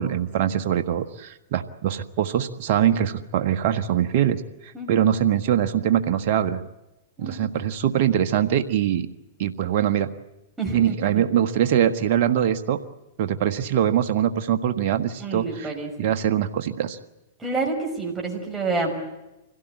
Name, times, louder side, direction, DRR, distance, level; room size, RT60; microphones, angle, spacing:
voice 1, 0.0-6.6 7.2-9.1 9.4-10.1 10.7-12.8 13.2-15.7 16.0-17.0, right 10 dB, 60° right, 9 dB, 1.4 m, -23 dB
voice 2, 4.7-5.1 7.2-7.5 10.6-11.2 15.2-15.9 17.4-18.9, right 3 dB, 15° right, 0 dB, 6.0 m, -28 dB
25.0 x 17.0 x 9.2 m, 0.97 s
hypercardioid pair, 110°, 0 cm